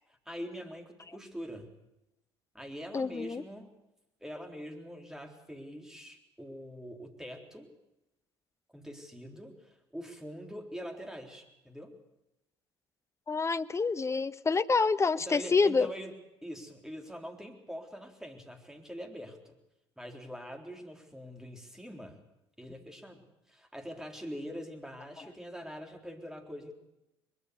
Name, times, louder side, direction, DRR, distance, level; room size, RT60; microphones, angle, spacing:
voice 1, 0.3-1.7 2.5-3.7 4.2-7.7 8.7-11.9 15.2-16.1 16.4-19.6 20.0-22.2 22.6-26.7, equal, 5° right, 4 dB, 3.8 m, -44 dB
voice 2, 2.9-3.4 13.3-15.9, left 4 dB, 20° left, 14 dB, 0.9 m, -27 dB
22.5 x 21.5 x 6.9 m, 0.91 s
figure-of-eight pair, 55°, 14 cm